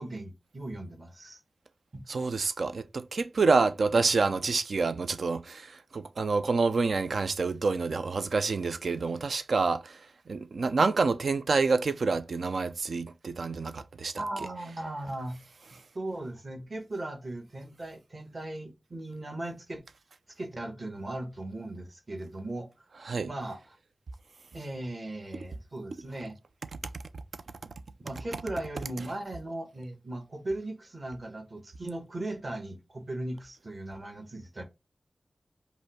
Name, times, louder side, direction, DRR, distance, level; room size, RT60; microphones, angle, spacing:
voice 1, 0.0-1.4 1.9-2.0 14.2-15.4 15.9-19.8 20.4-22.7 23.2-23.8 24.5-26.4 28.0-34.6, right 1 dB, 35° right, 1.2 m, -38 dB
voice 2, 2.1-10.0 10.3-14.1 23.1-23.3 26.9-27.2, right 4 dB, 70° right, 0.5 m, -27 dB
5.2 x 2.1 x 4.7 m
wide cardioid pair, 115°, 0 cm